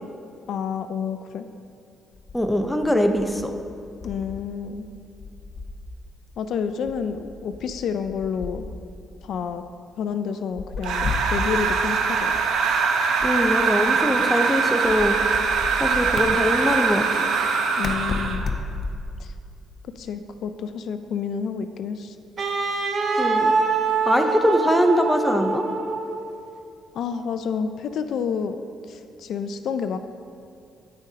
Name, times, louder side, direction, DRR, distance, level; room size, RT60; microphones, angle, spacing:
voice 1, 0.5-1.4 4.0-4.9 6.4-8.7 9.2-9.6 10.0-12.4 17.8-18.5 19.2-19.3 20.0-22.2 26.9-30.0, left 6 dB, 70° left, 9 dB, 0.4 m, -29 dB
sound 1, 2.1-4.5 4.7-5.9 6.9-9.0 10.5-11.9 13.2-14.2 14.8-16.3 17.8-19.3, left 3 dB, 50° left, 0.7 m, -34 dB
voice 2, 2.3-3.5 13.2-15.2 15.8-17.3 23.2-23.5 24.1-25.6, equal, 5° left, 5 dB, 0.7 m, -22 dB
sound 2, 10.8-18.5, right 5 dB, 80° right, 0.7 m, -22 dB
Wind instrument woodwind instrument, 22.4-26.4, right 4 dB, 55° right, 0.9 m, -24 dB
14.0 x 5.2 x 2.8 m, 2.5 s
cardioid pair, 90°, 0 cm